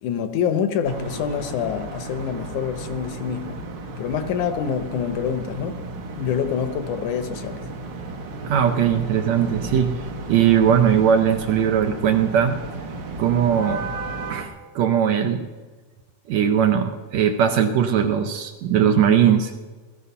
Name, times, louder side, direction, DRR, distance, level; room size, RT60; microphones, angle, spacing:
voice 1, 0.0-3.6 4.0-5.8 6.2-7.7, left 7 dB, 70° left, 2.1 m, -26 dB
sound 1, 0.8-14.4, right 2 dB, 50° right, 1.4 m, -34 dB
voice 2, 8.4-10.0 10.3-12.6 13.2-13.9 14.3-15.5 16.3-19.5, right 8 dB, 70° right, 1.8 m, -19 dB
17.0 x 14.5 x 5.6 m
omnidirectional pair, 3.8 m